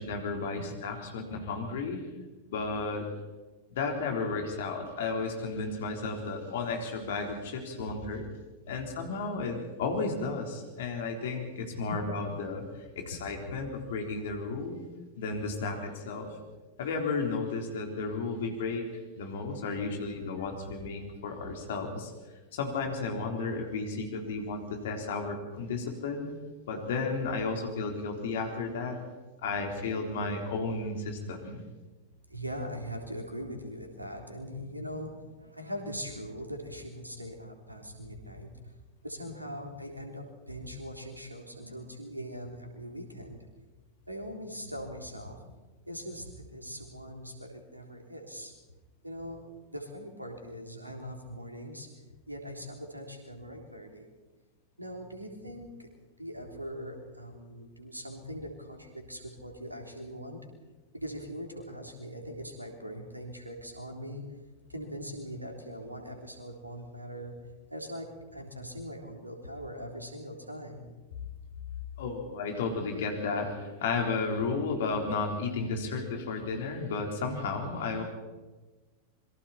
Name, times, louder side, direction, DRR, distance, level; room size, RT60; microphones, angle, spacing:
voice 1, 0.0-2.0 2.5-3.1 3.8-8.2 8.7-12.6 13.0-14.8 15.2-16.3 16.8-18.9 19.2-22.1 22.5-26.3 26.6-29.0 29.4-31.6 72.0-78.0, left 4 dB, 55° left, 3 dB, 4.0 m, -33 dB
voice 2, 32.3-38.7 39.0-43.4 44.1-45.5 45.9-48.5 49.0-49.4 49.7-51.9 52.3-54.1 54.8-55.9 56.2-60.4 60.9-64.2 64.7-67.3 67.7-70.9, equal, 85° right, 3 dB, 3.4 m, -41 dB
26.5 x 23.0 x 4.4 m, 1.2 s
figure-of-eight pair, 90°, 0 cm